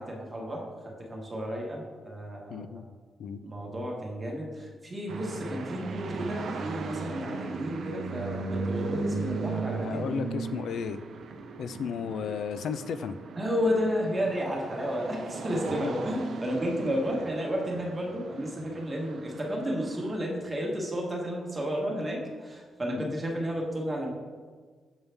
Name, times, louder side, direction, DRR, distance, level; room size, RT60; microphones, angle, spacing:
voice 1, 0.0-2.6 3.4-10.2 13.4-24.1, equal, 15° right, -1 dB, 1.2 m, -32 dB
voice 2, 2.5-2.9 3.2-3.4 9.8-11.0 11.6-13.2 15.7-15.9 22.9-23.2, left 6 dB, 65° left, 11 dB, 0.4 m, -34 dB
sound 1, 5.1-20.2, right 4 dB, 55° right, 0.6 m, -37 dB
7.2 x 5.5 x 3.4 m, 1.5 s
wide cardioid pair, 160°, 0 cm